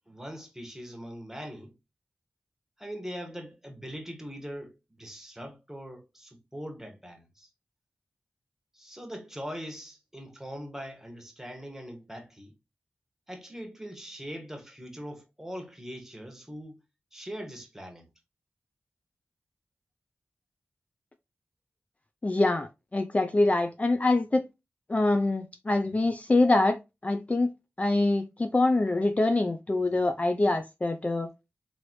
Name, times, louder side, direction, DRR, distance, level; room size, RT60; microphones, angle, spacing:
voice 1, 0.1-1.7 2.8-7.5 8.7-12.5 13.3-16.8 17.1-18.1, equal, 10° right, 1.5 m, -41 dB
voice 2, 22.2-24.4 24.9-26.8 27.0-27.5 27.8-31.3, left 2 dB, 30° left, 0.5 m, -25 dB
3.9 x 3.2 x 3.1 m
cardioid pair, 50°, 5 cm